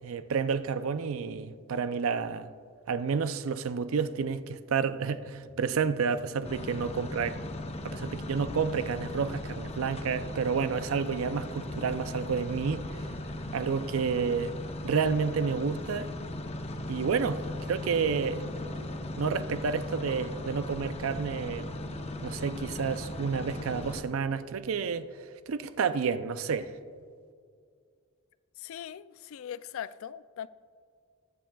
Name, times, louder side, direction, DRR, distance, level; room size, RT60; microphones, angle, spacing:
voice 1, 0.0-2.5 2.9-7.4 7.8-13.1 13.5-14.5 14.8-16.1 16.9-18.5 19.2-21.8 22.2-25.1 25.5-26.7, right 5 dB, 75° right, 0.5 m, -30 dB
sound 1, 5.4-24.5, equal, 50° right, 2.5 m, -53 dB
sound 2, 6.4-24.0, left 1 dB, 30° left, 0.6 m, -38 dB
voice 2, 28.6-30.5, left 9 dB, 70° left, 0.3 m, -40 dB
20.5 x 7.3 x 2.3 m
head